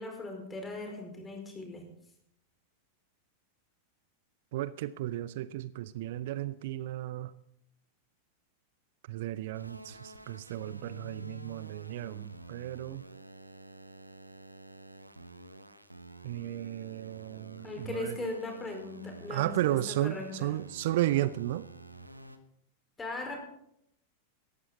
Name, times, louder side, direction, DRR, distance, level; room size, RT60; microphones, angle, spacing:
voice 1, 0.0-1.8 17.6-20.5 23.0-23.4, left 2 dB, 15° left, 2 dB, 4.8 m, -39 dB
voice 2, 4.5-7.3 9.1-13.0 16.2-18.3 19.3-21.6, right 14 dB, 55° right, 17 dB, 0.5 m, -34 dB
sound 1, 9.5-22.4, right 1 dB, 85° right, 1.1 m, -49 dB
18.0 x 13.5 x 4.1 m, 0.75 s
figure-of-eight pair, 90°, 0 cm